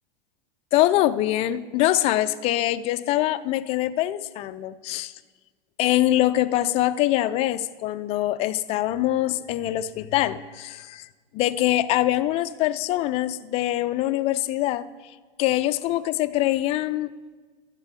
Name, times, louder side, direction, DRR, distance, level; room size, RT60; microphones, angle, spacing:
voice 1, 0.7-5.1 5.8-11.1 11.3-14.9 15.4-17.1, left 15 dB, 20° left, 13 dB, 0.3 m, -24 dB
12.0 x 7.5 x 6.9 m, 1.5 s
hypercardioid pair, 105°, 30 cm